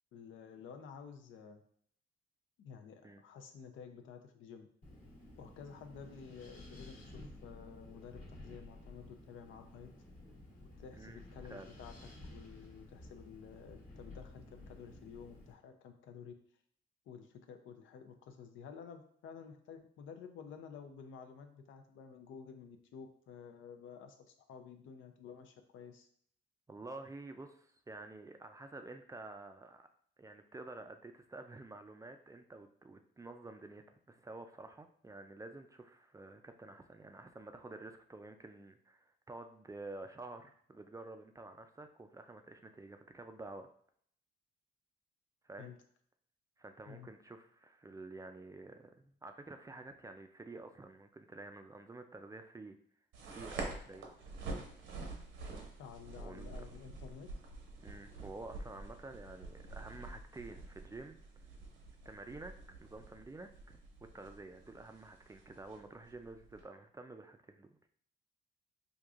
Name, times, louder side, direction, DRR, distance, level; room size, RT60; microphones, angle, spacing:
voice 1, 0.1-1.6 2.6-4.7 5.4-9.9 10.8-11.9 12.3-16.3 17.1-26.1 45.6-45.8 46.9-47.1 55.8-57.3, left 6 dB, 75° left, 6 dB, 0.5 m, -52 dB
Wind, 4.8-15.5, left 2 dB, 40° left, 1.2 m, -53 dB
voice 2, 11.0-11.7 26.7-29.9 30.2-43.7 45.4-45.7 46.6-52.8 53.3-54.2 56.2-56.6 57.8-61.2 62.0-62.5 62.8-63.8 64.1-67.7, right 2 dB, 15° right, 6 dB, 0.3 m, -50 dB
sound 1, 53.1-66.6, right 3 dB, 80° right, 0.8 m, -48 dB
4.5 x 2.6 x 2.4 m, 0.62 s
cardioid pair, 90°, 20 cm